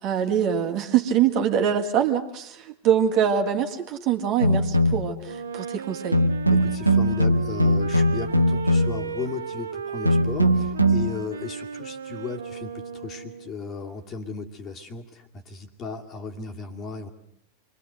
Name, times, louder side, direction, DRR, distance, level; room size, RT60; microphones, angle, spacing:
voice 1, 0.0-6.2, right 8 dB, 40° right, 4 dB, 2.4 m, -24 dB
sound 1, 4.4-5.2 6.1-9.1 10.1-11.1, equal, 85° right, 1.2 m, -21 dB
Wind instrument woodwind instrument, 5.2-13.6, right 7 dB, 70° right, 1.2 m, -35 dB
voice 2, 6.5-17.1, left 4 dB, 30° left, 4 dB, 2.5 m, -36 dB
28.0 x 22.5 x 8.0 m, 0.72 s
figure-of-eight pair, 90°, 0 cm